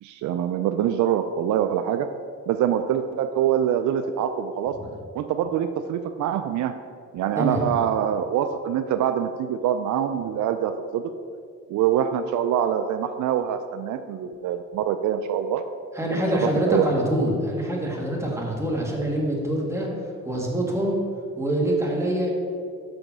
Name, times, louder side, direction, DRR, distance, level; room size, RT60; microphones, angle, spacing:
voice 1, 0.0-2.1 2.5-4.8 5.1-6.7 7.1-11.0 11.7-15.6 16.1-17.1, right 9 dB, 75° right, 9 dB, 0.5 m, -25 dB
voice 2, 15.9-19.9 20.2-21.0 21.4-22.3, right 1 dB, 10° right, -2 dB, 1.9 m, -25 dB
6.4 x 5.1 x 6.0 m, 2.2 s
cardioid pair, 90°, 30 cm